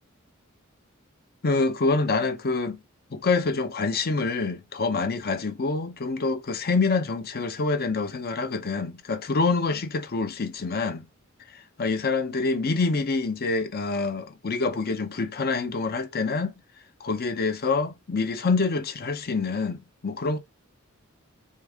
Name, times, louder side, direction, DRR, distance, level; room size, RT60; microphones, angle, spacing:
voice 1, 1.4-2.8 3.1-11.0 11.5-16.5 17.0-20.4, left 3 dB, 50° left, 0.7 m, -26 dB
3.8 x 3.6 x 3.4 m
head